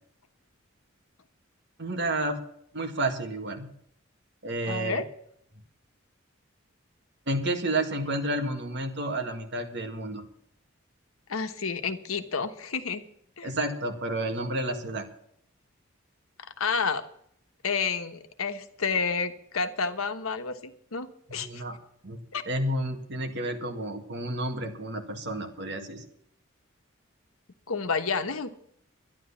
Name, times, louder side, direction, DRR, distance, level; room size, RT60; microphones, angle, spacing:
voice 1, 1.8-2.4 2.7-3.7 4.4-5.0 7.3-10.2 13.4-15.0 21.3-21.8 22.0-22.2 22.5-26.0, right 1 dB, 55° right, 5 dB, 2.0 m, -30 dB
voice 2, 4.7-5.0 11.3-13.0 13.4-13.5 16.6-17.1 17.6-21.6 22.3-22.4 27.7-28.5, left 5 dB, 90° left, 9 dB, 1.2 m, -30 dB
12.0 x 11.0 x 7.2 m, 0.70 s
head